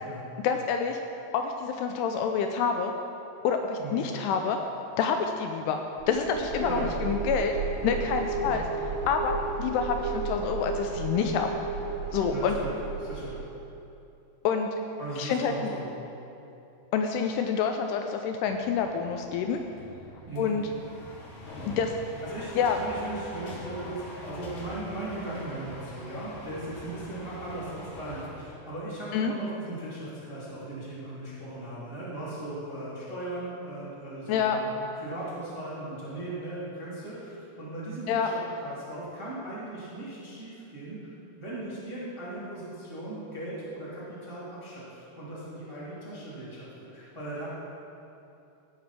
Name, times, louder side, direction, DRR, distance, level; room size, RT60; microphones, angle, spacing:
voice 1, 0.4-1.0 1.3-2.9 3.4-4.6 5.0-5.8 6.1-7.6 7.8-8.6 9.1-9.3 9.6-11.5 12.1-12.6 14.4-14.7 15.2-15.7 16.9-19.6 20.4-20.7 21.7-22.0 22.6-22.8 29.1-29.3 34.3-34.6 38.1-38.3, left 6 dB, 85° left, 5 dB, 2.5 m, -27 dB
sound 1, 6.0-13.7, right 4 dB, 80° right, 2.7 m, -33 dB
voice 2, 12.3-12.7 13.0-13.4 15.0-15.9 20.3-20.5 22.2-41.1 41.4-47.5, right 2 dB, 10° right, -9 dB, 1.4 m, -38 dB
sound 2, 18.4-28.3, left 1 dB, 55° left, 2.4 m, -44 dB
15.5 x 5.2 x 5.8 m, 2.8 s
omnidirectional pair, 5.0 m